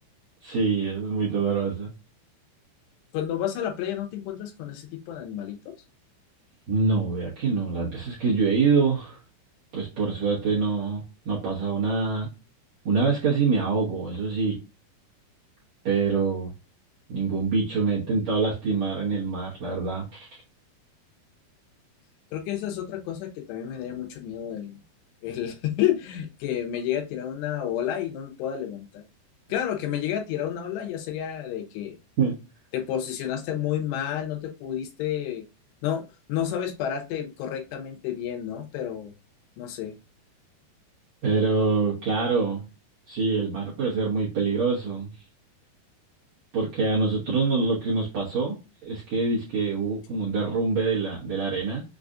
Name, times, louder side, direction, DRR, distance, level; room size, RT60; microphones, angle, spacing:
voice 1, 0.4-1.9 6.7-9.2 9.7-12.3 12.9-14.6 15.8-16.5 17.1-20.3 32.2-32.3 41.2-42.6 43.1-45.1 46.5-51.8, right 4 dB, 65° right, -7 dB, 1.8 m, -25 dB
voice 2, 3.1-5.7 22.3-24.8 25.2-29.0 29.5-32.0 32.7-35.4 35.8-39.1 39.6-39.9, left 10 dB, 85° left, 4 dB, 3.0 m, -30 dB
6.7 x 2.4 x 2.5 m, 0.29 s
omnidirectional pair, 4.9 m